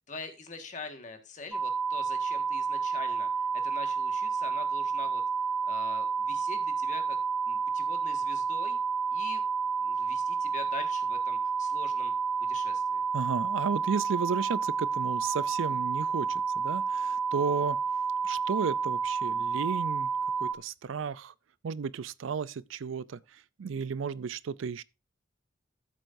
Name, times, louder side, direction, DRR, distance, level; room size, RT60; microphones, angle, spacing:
voice 1, 0.1-5.2 5.7-7.2 7.5-8.8 9.1-9.4 9.8-12.1 12.4-13.0, left 3 dB, 40° left, 1.6 m, -44 dB
sound 1, 1.5-20.5, right 5 dB, 5° right, 0.6 m, -30 dB
voice 2, 13.1-17.8 18.2-20.1 20.4-21.3 21.6-24.8, right 6 dB, 85° right, 0.4 m, -33 dB
13.5 x 7.7 x 2.6 m
head